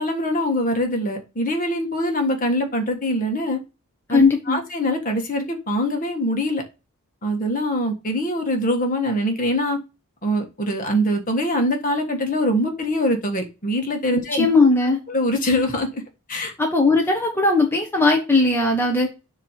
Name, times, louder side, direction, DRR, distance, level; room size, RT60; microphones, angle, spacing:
voice 1, 0.0-3.6 4.1-6.6 7.2-9.8 10.2-14.5 15.1-16.0 16.3-16.5, equal, 35° left, 1.5 m, -23 dB
voice 2, 4.1-4.6 14.1-15.0 16.6-19.1, left 3 dB, 10° left, 1.0 m, -18 dB
7.4 x 3.1 x 5.7 m
head